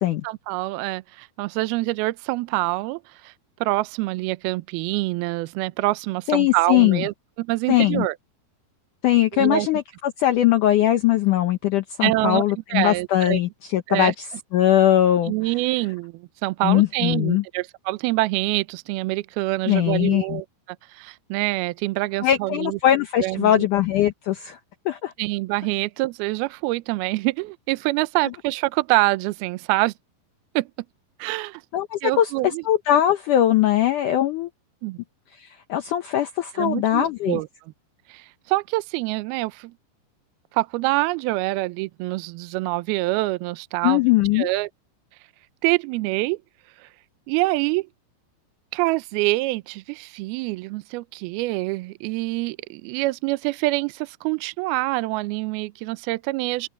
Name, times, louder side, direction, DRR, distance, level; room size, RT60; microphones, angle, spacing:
voice 1, 0.2-3.3 3.6-8.1 9.3-9.7 12.0-12.4 12.7-13.4 13.9-14.1 15.3-20.5 20.9-22.8 23.2-23.7 25.2-29.9 30.6-30.7 31.2-31.6 32.0-32.6 34.8-35.0 36.6-37.5 38.1-39.7 40.5-44.0 44.4-44.7 45.6-46.4 46.8-46.9 47.3-47.9 48.7-56.7, right 21 dB, 80° right, 2.3 m, -25 dB
voice 2, 6.3-7.0 7.7-8.1 9.0-14.3 14.5-15.3 16.6-17.4 19.7-20.4 22.2-24.6 24.9-25.1 31.7-32.3 32.6-34.5 35.4-37.4 43.8-44.5, left 12 dB, 90° left, 1.7 m, -20 dB
open air
omnidirectional pair, 5.0 m